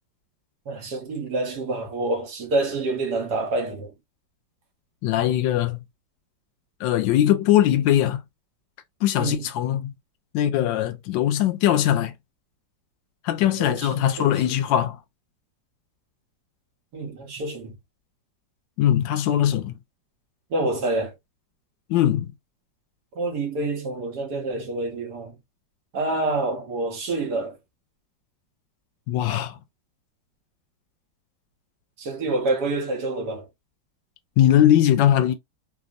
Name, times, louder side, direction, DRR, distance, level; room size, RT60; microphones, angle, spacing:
voice 1, 0.7-3.9 9.2-9.4 13.4-14.3 16.9-17.8 20.5-21.1 23.1-25.3 25.9-27.6 32.0-33.5, right 2 dB, 65° right, 1.4 m, -27 dB
voice 2, 5.0-5.8 6.8-8.2 9.0-9.9 10.3-12.1 13.2-15.0 18.8-19.8 21.9-22.3 29.1-29.6 34.4-35.3, left 11 dB, 75° left, 1.2 m, -20 dB
3.4 x 2.1 x 2.4 m
omnidirectional pair, 2.1 m